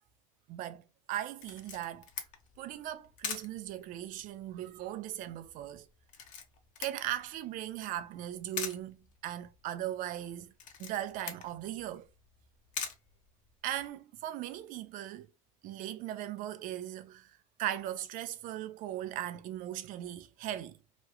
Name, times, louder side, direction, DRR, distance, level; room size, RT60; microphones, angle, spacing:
voice 1, 0.5-2.1 2.6-5.9 6.8-10.5 10.8-12.1 13.6-15.3 15.6-20.8, right 12 dB, 50° right, 0.5 m, -38 dB
Camera, 1.4-13.9, left 7 dB, 45° left, 0.8 m, -45 dB
2.9 x 2.3 x 3.0 m
hypercardioid pair, 80°, 18 cm